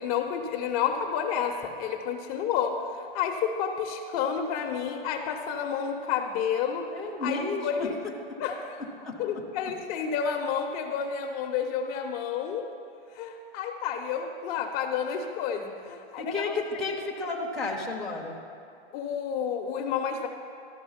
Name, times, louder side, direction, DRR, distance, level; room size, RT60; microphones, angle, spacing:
voice 1, 0.0-6.9 7.2-8.0 8.4-8.9 9.2-12.7 13.1-16.8 18.9-20.3, left 7 dB, 40° left, 4 dB, 0.8 m, -30 dB
voice 2, 6.9-7.9 9.0-9.1 16.2-18.4, left 3 dB, ahead, -3 dB, 0.8 m, -32 dB
13.0 x 6.0 x 5.7 m, 2.6 s
hypercardioid pair, 145°, 30 cm